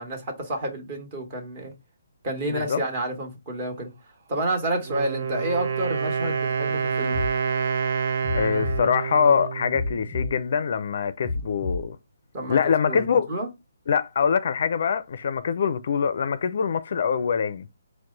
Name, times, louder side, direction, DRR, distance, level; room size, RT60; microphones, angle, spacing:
voice 1, 0.0-1.7 2.2-3.9 4.3-7.2 12.3-13.5, right 1 dB, 30° right, 1.5 m, -30 dB
voice 2, 2.4-2.8 8.3-12.0 12.5-13.3 13.9-17.7, left 6 dB, 55° left, 0.4 m, -24 dB
Wind instrument woodwind instrument, 4.8-10.5, right 6 dB, 50° right, 0.6 m, -28 dB
sound 1, 7.1-7.3 8.2-8.8 9.7-10.3 11.2-11.8, left 3 dB, 5° left, 0.7 m, -29 dB
4.6 x 2.1 x 3.8 m
hypercardioid pair, 160°, 0 cm